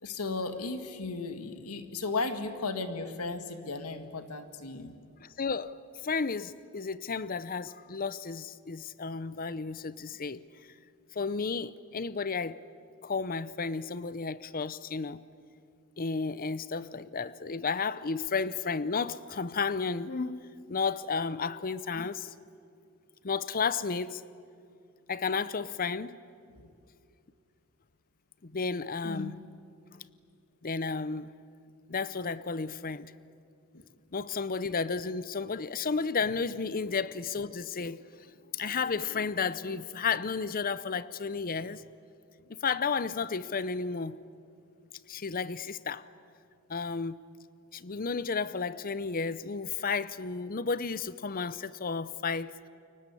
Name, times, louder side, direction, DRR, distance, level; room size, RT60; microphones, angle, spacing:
voice 1, 0.0-4.9 26.5-26.7 29.0-29.4 33.7-33.8, left 3 dB, 90° left, 1.9 m, -35 dB
voice 2, 5.2-5.8 6.0-10.4 11.1-12.6 13.0-15.2 16.0-22.3 23.2-24.2 25.1-26.2 28.4-29.4 30.6-31.3 31.9-33.1 34.1-38.3 38.5-41.8 42.5-44.2 45.1-46.1 46.7-47.2 47.7-52.5, left 5 dB, 40° left, 0.7 m, -32 dB
29.0 x 23.5 x 8.5 m
head